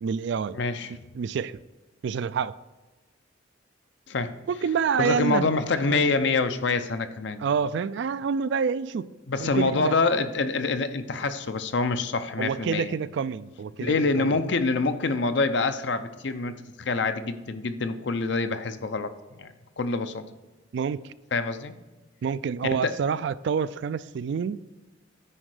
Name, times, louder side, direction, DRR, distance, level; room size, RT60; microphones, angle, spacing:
voice 1, 0.0-0.6 1.1-1.6 2.0-2.5 4.5-5.5 5.9-6.1 7.4-9.1 9.4-9.9 12.4-14.4 20.7-21.1 22.2-24.6, right 6 dB, 60° right, 16 dB, 0.3 m, -27 dB
voice 2, 0.5-1.0 4.1-4.4 5.0-7.5 9.3-12.9 13.8-19.1 19.4-20.2 21.3-21.7 22.8-22.9, left 3 dB, 60° left, 10 dB, 0.6 m, -26 dB
9.9 x 4.4 x 4.9 m, 1.2 s
head